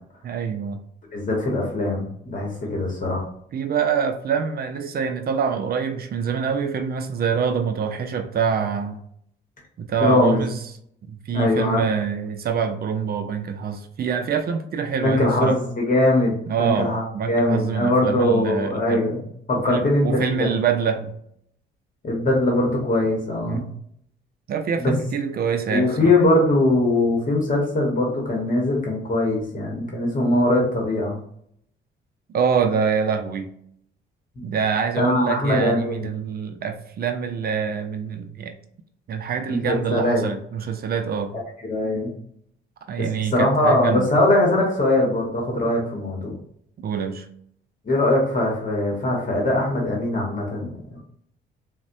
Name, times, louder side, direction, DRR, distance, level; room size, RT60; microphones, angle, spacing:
voice 1, 0.2-0.8 3.5-9.0 9.8-10.6 11.1-15.6 16.5-19.1 19.7-21.1 23.5-23.7 24.5-26.1 32.3-33.5 34.4-38.5 39.1-41.3 42.9-44.1 46.8-47.3, right 6 dB, 50° right, 7 dB, 0.4 m, -25 dB
voice 2, 1.1-3.3 10.0-10.4 11.3-11.8 15.0-19.2 19.5-20.5 22.0-23.6 24.8-24.9 25.7-31.2 34.4-34.5 35.0-36.1 39.5-40.2 41.6-42.1 43.3-46.4 47.8-51.0, left 1 dB, 40° left, -1 dB, 1.0 m, -21 dB
4.0 x 2.1 x 2.5 m, 0.69 s
cardioid pair, 90°, 20 cm